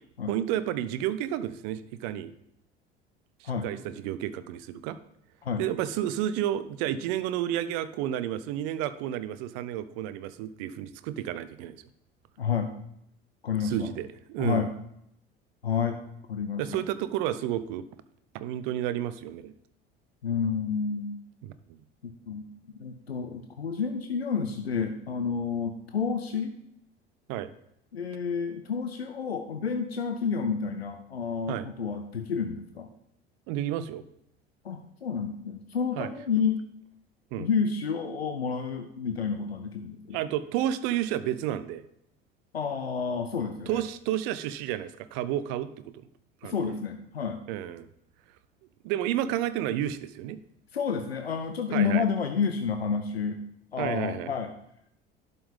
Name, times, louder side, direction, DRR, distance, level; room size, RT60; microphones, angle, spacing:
voice 1, 0.3-2.3 3.6-5.0 5.6-11.8 13.6-14.7 16.6-17.8 18.3-19.5 21.4-21.5 27.3-27.5 31.5-31.7 33.5-34.0 36.0-36.1 37.3-37.5 40.1-41.8 43.7-45.7 46.4-46.5 47.5-47.9 48.8-50.4 51.7-52.0 53.8-54.3, right 12 dB, 55° right, 14 dB, 0.6 m, -31 dB
voice 2, 12.4-12.7 13.4-13.9 14.4-14.7 15.6-16.0 16.3-16.8 20.2-21.2 22.0-22.5 22.8-26.5 27.9-32.9 34.6-36.6 37.4-40.2 42.5-43.8 46.4-47.4 50.7-53.4 53.7-54.5, left 6 dB, 85° left, 6 dB, 0.5 m, -30 dB
11.0 x 5.4 x 3.6 m, 0.75 s
figure-of-eight pair, 60°, 30 cm